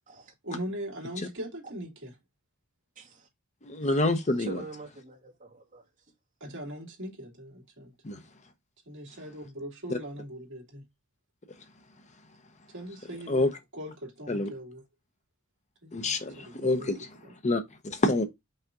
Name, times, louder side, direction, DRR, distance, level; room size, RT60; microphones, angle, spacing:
voice 1, 0.4-2.1 6.4-7.9 8.9-10.8 12.7-14.8 15.8-16.9 17.2-17.3, right 1 dB, 60° right, 2.6 m, -40 dB
voice 2, 3.0-3.3 3.8-4.0 4.4-5.8, right 3 dB, 40° right, 2.2 m, -45 dB
voice 3, 3.6-4.6 8.0-8.2 9.9-10.0 13.3-13.5 14.3-14.5 15.9-17.1 17.4-18.2, left 2 dB, 35° left, 0.9 m, -27 dB
5.6 x 5.0 x 3.7 m
head